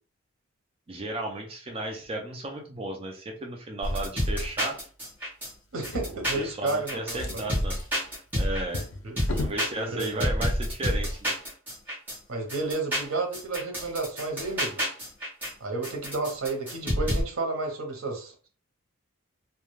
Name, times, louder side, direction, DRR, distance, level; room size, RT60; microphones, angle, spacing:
voice 1, 0.9-4.8 6.4-7.8 8.3-8.9 9.3-11.3, right 1 dB, 25° right, 2 dB, 0.4 m, -34 dB
sound 1, 3.8-5.5 5.8-8.8 9.2-12.2 12.5-15.5 15.8-17.2, equal, 10° right, 1.0 m, -29 dB
Drawer open or close, 5.7-6.7 7.1-9.7 10.6-10.7 11.1-11.2, left 2 dB, 80° left, 0.5 m, -37 dB
voice 2, 5.7-7.4 9.0-9.1 9.9-10.3 12.3-14.8 15.6-18.5, right 3 dB, 85° right, 4 dB, 0.7 m, -31 dB
2.3 x 2.1 x 3.0 m, 0.39 s
head